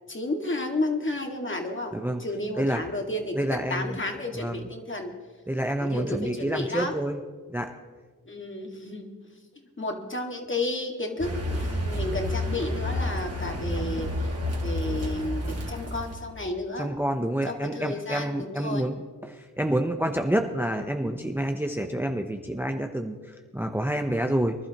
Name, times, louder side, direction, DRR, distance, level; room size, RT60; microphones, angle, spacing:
voice 1, 0.1-5.1 5.8-7.0 8.3-14.3 14.6-16.9 17.5-18.9, left 2 dB, 35° left, 2 dB, 2.0 m, -32 dB
voice 2, 3.4-4.0 4.4-4.6 5.5-7.2 7.5-7.7 16.8-24.6, right 1 dB, 5° right, 4 dB, 0.8 m, -28 dB
Car, 11.2-16.3, left 1 dB, 45° right, 2.2 m, -30 dB
24.0 x 11.5 x 3.0 m, 1.5 s
wide cardioid pair, 65°, 35 cm